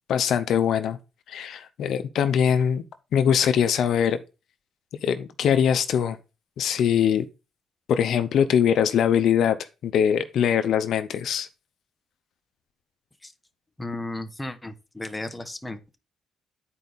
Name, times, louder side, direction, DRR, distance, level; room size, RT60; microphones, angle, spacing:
voice 1, 0.1-1.0 1.3-2.8 3.1-4.2 5.0-6.2 6.6-7.2 7.9-11.5, left 8 dB, 70° left, 0.7 m, -22 dB
voice 2, 13.8-16.0, left 2 dB, 10° left, 1.1 m, -35 dB
9.9 x 4.6 x 4.1 m
cardioid pair, 90°, 0 cm